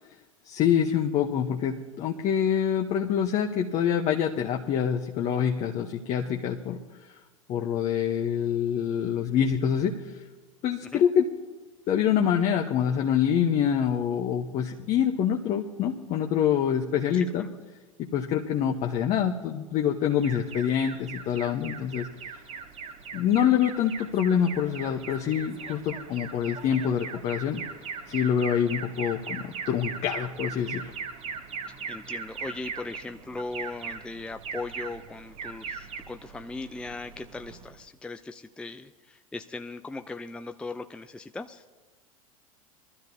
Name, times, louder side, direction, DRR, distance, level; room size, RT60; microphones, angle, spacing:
voice 1, 0.4-6.8 7.5-10.0 10.6-11.3 11.9-17.5 18.0-22.1 23.1-27.6 28.1-30.8, left 8 dB, 40° left, 2 dB, 1.0 m, -26 dB
voice 2, 17.1-17.5 31.9-41.6, left 3 dB, 5° left, 7 dB, 0.5 m, -39 dB
Alarm, 20.2-37.8, right 5 dB, 35° right, 1.4 m, -39 dB
23.5 x 13.0 x 2.7 m, 1.3 s
figure-of-eight pair, 85°, 18 cm